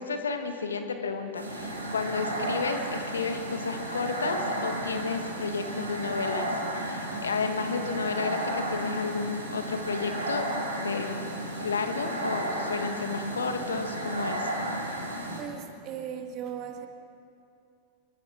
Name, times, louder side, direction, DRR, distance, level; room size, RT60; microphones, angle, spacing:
voice 1, 0.0-10.5 10.8-11.2 11.6-14.5, left 4 dB, 70° left, 6 dB, 1.8 m, -32 dB
sound 1, 1.3-15.4, right 1 dB, 80° right, 4.5 m, -33 dB
voice 2, 15.4-16.9, right 8 dB, 40° right, 5 dB, 2.2 m, -37 dB
26.0 x 24.0 x 4.5 m, 2.6 s
figure-of-eight pair, 90°, 0 cm